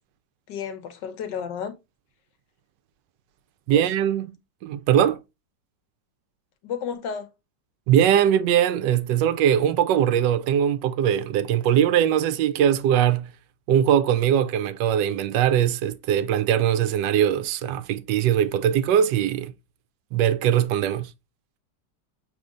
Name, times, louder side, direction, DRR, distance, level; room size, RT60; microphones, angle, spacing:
voice 1, 0.5-1.7 3.7-3.8 6.6-7.3, left 7 dB, 80° left, 1.5 m, -32 dB
voice 2, 3.7-4.4 4.6-5.2 7.9-13.3 13.7-19.5 20.1-21.1, right 10 dB, 80° right, 1.2 m, -21 dB
6.2 x 3.4 x 2.4 m
omnidirectional pair, 1.9 m